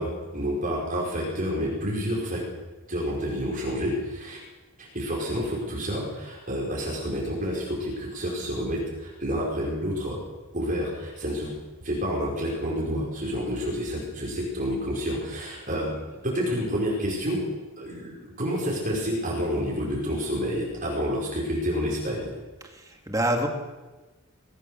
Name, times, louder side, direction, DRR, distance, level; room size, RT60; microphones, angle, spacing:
voice 1, 0.0-2.4 2.9-4.4 4.8-10.2 10.5-11.5 11.8-17.4 17.8-22.3, equal, 35° right, -4 dB, 5.5 m, -29 dB
voice 2, 22.6-23.5, right 1 dB, 15° right, 3 dB, 2.2 m, -27 dB
23.0 x 16.0 x 7.0 m, 1.2 s
head